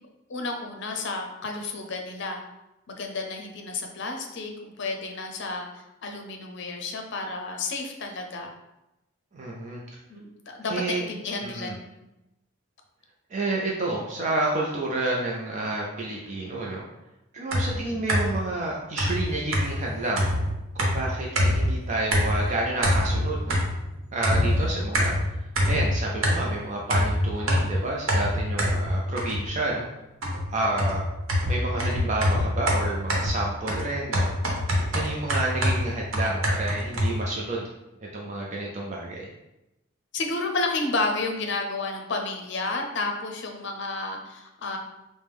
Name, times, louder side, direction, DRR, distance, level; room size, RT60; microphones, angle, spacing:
voice 1, 0.3-2.4 2.9-8.5 10.1-11.7 17.7-18.0 24.5-24.9 40.1-44.8, left 3 dB, 60° left, 3 dB, 0.6 m, -31 dB
voice 2, 9.3-9.8 10.7-11.0 11.4-11.7 13.3-16.9 17.3-20.2 20.7-23.6 24.1-25.1 25.7-29.9 30.5-31.0 31.5-34.3 34.9-37.7 38.1-39.3, right 2 dB, 35° right, -2 dB, 0.4 m, -29 dB
sound 1, 17.5-18.5 19.0-21.8 22.1-22.5 22.8-23.9 24.2-26.6 26.9-29.6 30.2-37.2, equal, 85° right, 0.9 m, -25 dB
4.8 x 2.1 x 3.4 m, 0.94 s
head